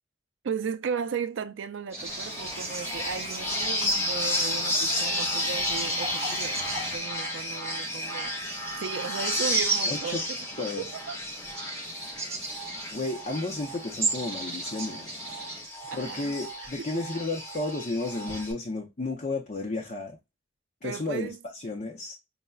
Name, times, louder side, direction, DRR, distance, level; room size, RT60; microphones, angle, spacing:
voice 1, 0.4-8.3 8.8-11.2 15.9-16.3 16.8-16.9 20.8-21.4, right 6 dB, 85° right, 0.4 m, -35 dB
sound 1, 1.9-15.7, right 4 dB, 15° right, 1.2 m, -37 dB
sound 2, 2.0-7.0, right 1 dB, 35° right, 0.7 m, -41 dB
sound 3, 2.1-18.5, left 1 dB, 15° left, 0.8 m, -32 dB
voice 2, 9.9-10.2 10.6-10.8 12.9-15.1 15.9-20.2 20.8-22.1, left 2 dB, 40° left, 0.6 m, -32 dB
5.3 x 2.1 x 2.3 m
head